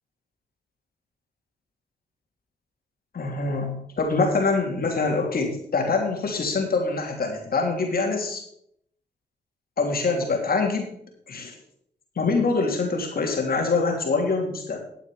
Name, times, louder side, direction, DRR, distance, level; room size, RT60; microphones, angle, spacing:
voice 1, 3.1-8.4 9.8-10.9 11.3-11.5 12.2-14.8, left 3 dB, 60° left, 2 dB, 3.2 m, -24 dB
12.5 x 8.2 x 5.0 m, 0.69 s
supercardioid pair, 45°, 18 cm